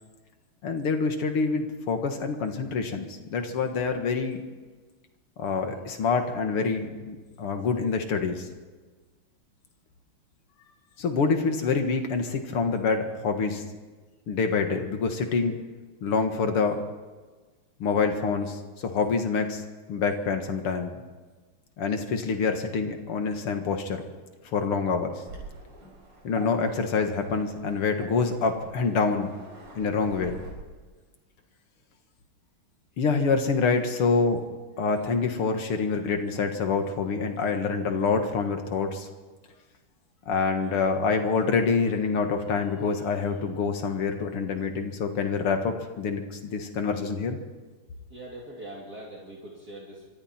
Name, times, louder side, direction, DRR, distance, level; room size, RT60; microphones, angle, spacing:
voice 1, 0.6-4.4 5.4-8.5 11.0-13.6 14.3-15.6 16.0-16.8 17.8-19.6 19.9-21.0 21.8-24.0 24.5-25.2 26.2-29.3 29.7-30.4 33.0-34.4 34.8-39.1 40.3-47.4, left 4 dB, 80° left, 5 dB, 2.7 m, -26 dB
Waves surf, 25.3-30.5, right 2 dB, 80° right, 6.9 m, -46 dB
voice 2, 48.1-50.1, right 1 dB, 45° right, -3 dB, 3.1 m, -42 dB
25.5 x 24.0 x 4.5 m, 1.3 s
omnidirectional pair, 2.4 m